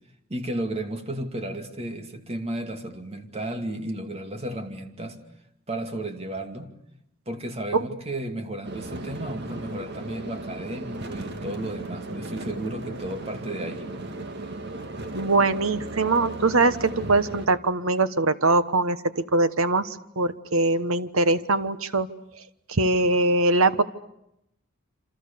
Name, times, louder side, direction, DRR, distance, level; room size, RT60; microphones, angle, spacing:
voice 1, 0.3-5.2 5.7-6.7 7.3-13.9, right 1 dB, 30° right, 6 dB, 2.5 m, -33 dB
sound 1, 8.6-17.5, right 2 dB, 55° right, 2.0 m, -36 dB
voice 2, 15.1-22.1 22.7-23.8, right 2 dB, 75° right, 13 dB, 1.3 m, -22 dB
28.0 x 26.5 x 6.9 m, 0.81 s
head